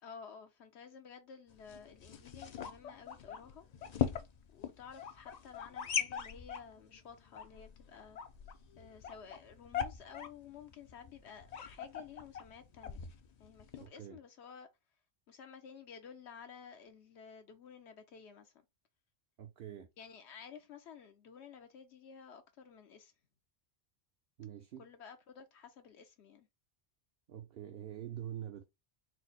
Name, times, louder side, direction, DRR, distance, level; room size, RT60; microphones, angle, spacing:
voice 1, 0.0-3.6 4.5-8.2 8.8-13.0 13.4-14.7 15.3-18.6 20.0-23.1 24.8-26.5, left 6 dB, 75° left, 0.9 m, -53 dB
sound 1, 1.5-13.9, left 8 dB, 50° left, 0.5 m, -41 dB
voice 2, 13.7-14.2 19.4-19.9 24.4-24.8 27.3-28.6, right 10 dB, 65° right, 0.8 m, -45 dB
4.5 x 2.1 x 4.0 m
omnidirectional pair, 1.2 m